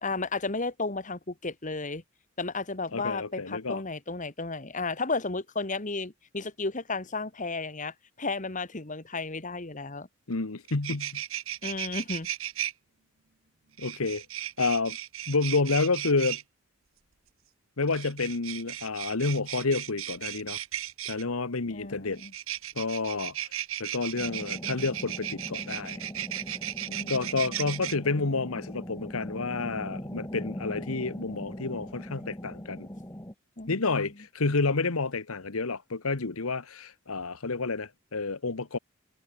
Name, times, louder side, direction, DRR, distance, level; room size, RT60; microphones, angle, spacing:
voice 1, 0.0-2.0 2.4-10.1 11.6-12.3 21.7-22.3 26.9-27.4 33.6-34.1, left 3 dB, 35° left, 1.8 m, -33 dB
voice 2, 2.9-3.8 10.3-11.2 13.8-14.2 14.6-15.0 15.3-16.4 17.8-20.6 21.1-22.2 22.7-23.3 23.8-26.0 27.1-32.9 33.7-38.8, left 3 dB, 85° left, 1.3 m, -29 dB
sound 1, 10.3-10.4 10.6-12.7 13.8-16.4 17.8-21.2 22.2-27.9, right 12 dB, 70° right, 1.1 m, -36 dB
sound 2, 24.2-33.3, equal, 15° left, 2.7 m, -40 dB
head